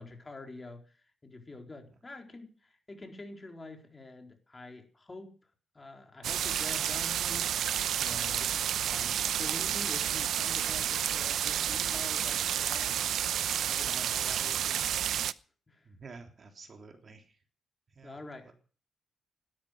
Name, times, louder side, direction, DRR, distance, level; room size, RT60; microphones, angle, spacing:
voice 1, 0.0-5.3 5.7-7.5 8.0-8.5 8.8-13.0 13.7-15.0 15.7-15.9 18.0-18.5, left 2 dB, 25° left, 3 dB, 4.1 m, -46 dB
sound 1, 6.2-15.3, right 10 dB, 80° right, 0.7 m, -30 dB
voice 2, 15.8-17.4 17.9-18.5, right 4 dB, 45° right, 5 dB, 3.4 m, -51 dB
17.0 x 12.5 x 6.3 m, 0.41 s
cardioid pair, 100°, 0 cm